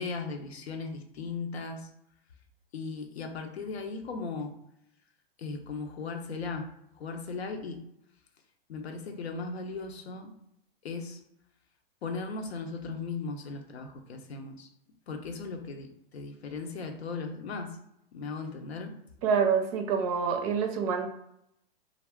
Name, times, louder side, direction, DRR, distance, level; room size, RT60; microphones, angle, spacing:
voice 1, 0.0-1.9 2.7-4.5 5.4-7.8 8.7-10.3 10.8-11.2 12.0-14.7 15.1-17.8 18.1-18.9, left 4 dB, 90° left, 5 dB, 0.6 m, -37 dB
voice 2, 19.2-21.1, right 6 dB, 35° right, 5 dB, 0.4 m, -26 dB
2.4 x 2.0 x 3.4 m, 0.77 s
hypercardioid pair, 130°, 31 cm